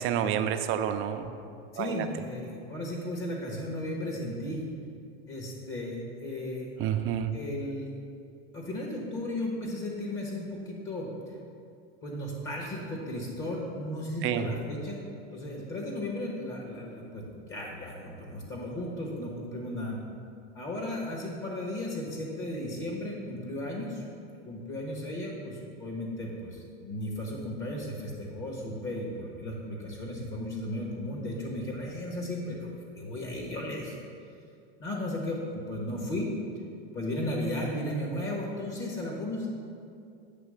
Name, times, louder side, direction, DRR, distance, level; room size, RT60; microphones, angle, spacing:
voice 1, 0.0-1.3 1.8-2.1 6.8-7.3 14.2-14.5, right 9 dB, 40° right, 8 dB, 0.5 m, -29 dB
voice 2, 1.7-4.7 5.3-6.7 7.3-7.9 8.5-11.1 12.0-15.0 15.3-20.0 20.5-24.0 24.4-32.7 33.0-33.9 34.8-36.3 36.9-39.5, left 1 dB, 40° left, -1 dB, 1.3 m, -35 dB
8.3 x 3.1 x 6.3 m, 2.5 s
supercardioid pair, 110°, 32 cm